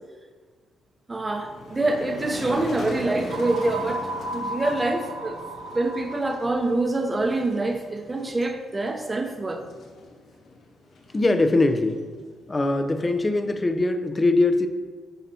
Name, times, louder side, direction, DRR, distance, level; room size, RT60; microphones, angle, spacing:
Motor vehicle (road), 1.1-13.8, left 3 dB, 65° left, 1.4 m, -41 dB
voice 1, 1.1-5.4 5.7-9.6, right 2 dB, 20° right, 6 dB, 0.7 m, -26 dB
sound 1, 3.3-6.9, right 1 dB, 75° right, 0.8 m, -34 dB
voice 2, 11.1-12.0 12.5-14.7, left 2 dB, 25° left, 9 dB, 0.5 m, -21 dB
11.5 x 4.1 x 2.8 m, 1.5 s
cardioid pair, 90°, 0 cm